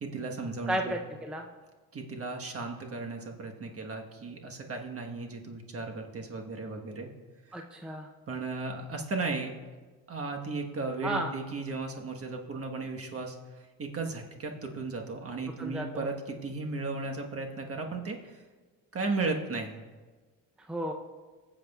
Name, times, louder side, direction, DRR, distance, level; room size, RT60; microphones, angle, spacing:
voice 1, 0.0-1.0 1.9-7.1 7.5-7.6 8.3-9.5 10.1-18.4 18.9-19.8, right 3 dB, 35° right, 3 dB, 1.3 m, -35 dB
voice 2, 0.7-1.5 7.5-8.1 11.0-11.3 15.6-16.1 20.7-20.9, right 1 dB, ahead, 2 dB, 0.6 m, -33 dB
16.0 x 7.4 x 2.4 m, 1.3 s
supercardioid pair, 75°, 39 cm